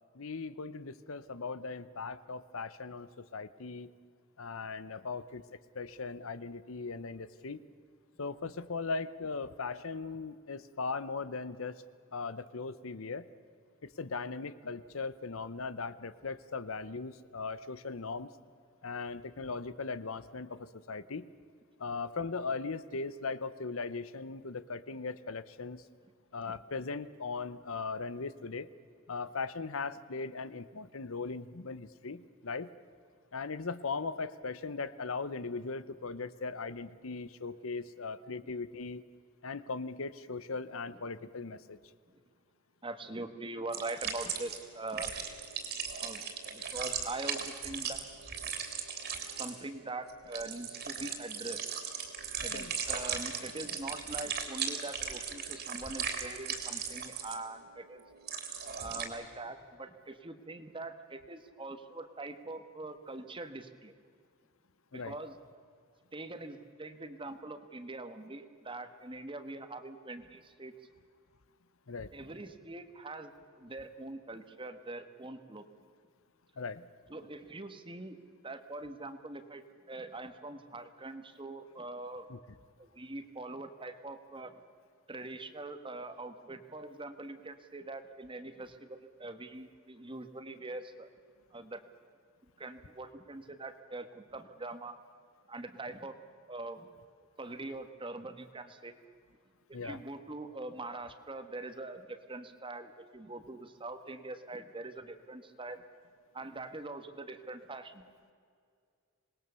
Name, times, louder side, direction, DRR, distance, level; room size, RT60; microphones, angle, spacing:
voice 1, 0.1-3.9 4.4-5.4 5.7-7.6 8.2-11.8 12.1-13.2 13.8-18.3 18.8-21.3 21.8-25.8 26.3-28.7 29.1-32.7 33.3-39.0 39.4-41.8 52.5-52.7 64.9-65.1 71.9-72.1 76.6-76.8 82.3-82.4 99.7-100.0, left 4 dB, 65° left, 15 dB, 0.8 m, -39 dB
voice 2, 42.8-45.1 46.0-46.2 46.5-48.0 49.4-51.7 52.4-58.0 58.8-63.9 64.9-65.4 66.1-70.7 72.1-75.6 77.1-78.2 78.4-82.3 82.8-84.5 85.1-91.1 91.5-91.8 92.6-94.9 95.5-96.2 96.5-96.9 97.4-99.0 99.7-105.8 106.3-108.0, right 2 dB, 25° right, 9 dB, 1.4 m, -43 dB
sound 1, 43.7-44.6 44.9-59.1, right 7 dB, 50° right, 3.3 m, -38 dB
26.0 x 20.5 x 6.9 m, 2.2 s
head